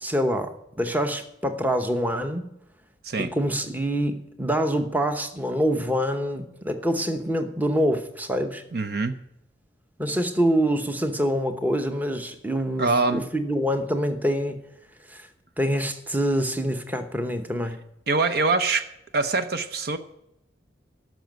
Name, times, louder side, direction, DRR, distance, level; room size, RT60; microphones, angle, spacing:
voice 1, 0.0-0.5 0.8-2.5 3.3-8.6 10.0-14.6 15.1-15.3 15.6-17.8, equal, 10° right, 7 dB, 0.9 m, -25 dB
voice 2, 8.7-9.2 12.8-13.2 18.1-18.9 19.1-20.0, right 3 dB, 55° right, 10 dB, 0.7 m, -24 dB
13.0 x 6.2 x 9.1 m, 0.82 s
head